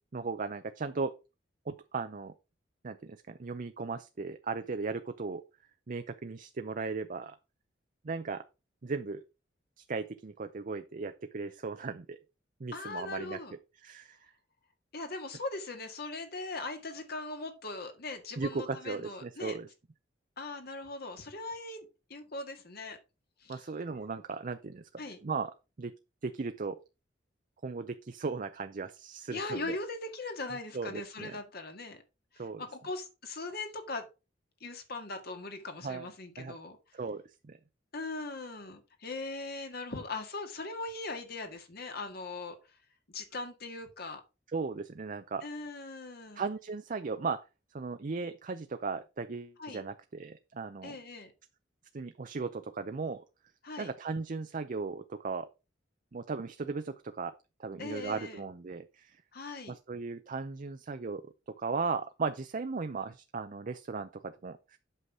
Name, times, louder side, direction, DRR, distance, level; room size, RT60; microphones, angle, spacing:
voice 1, 0.1-1.1 1.7-2.3 2.8-5.4 5.9-7.3 8.0-8.4 8.8-9.2 9.8-12.2 12.6-13.4 13.8-14.2 18.4-19.7 23.5-25.5 25.8-25.9 26.2-26.8 27.6-29.7 30.7-31.4 32.4-32.6 35.8-36.1 36.4-36.6 36.9-37.6 44.5-45.4 46.3-47.4 47.7-51.0 51.9-53.2 53.8-55.5 56.1-57.3 57.6-59.2 59.7-61.2 61.6-64.8, right 4 dB, 45° right, 9 dB, 0.5 m, -37 dB
voice 2, 12.7-13.5 14.9-19.6 20.4-23.0 23.4-23.6 25.0-25.2 29.3-32.0 32.3-34.1 34.6-36.8 37.9-42.6 43.1-44.2 45.4-46.4 49.6-49.8 50.8-51.3 53.6-53.9 57.8-58.4 59.3-59.7, left 3 dB, 60° left, 6 dB, 1.9 m, -40 dB
8.2 x 5.8 x 4.7 m, 0.29 s
head